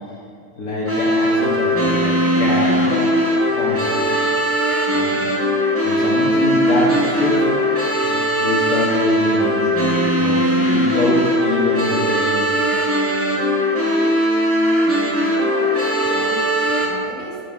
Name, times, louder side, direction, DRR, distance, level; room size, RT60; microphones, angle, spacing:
voice 1, 0.6-3.0 3.6-4.1 4.9-5.2 5.8-7.4 8.0-12.6, left 2 dB, 55° left, -6 dB, 1.7 m, -24 dB
sound 1, 0.9-16.9, equal, 15° right, 0.5 m, -19 dB
voice 2, 15.2-17.4, right 1 dB, 80° right, -3 dB, 2.0 m, -35 dB
9.7 x 3.8 x 5.2 m, 2.6 s
omnidirectional pair, 2.0 m